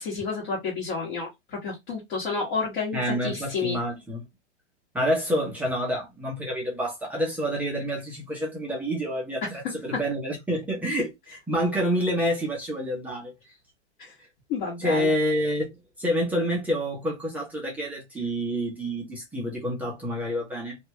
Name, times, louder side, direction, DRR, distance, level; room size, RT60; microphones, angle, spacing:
voice 1, 0.0-3.8 9.9-10.0 14.0-14.1 14.5-15.1, left 4 dB, 40° left, 1.4 m, -30 dB
voice 2, 2.9-4.2 4.9-13.3 14.8-15.7 16.0-20.8, equal, 5° right, 0.5 m, -28 dB
2.7 x 2.3 x 2.7 m
hypercardioid pair, 145°, 36 cm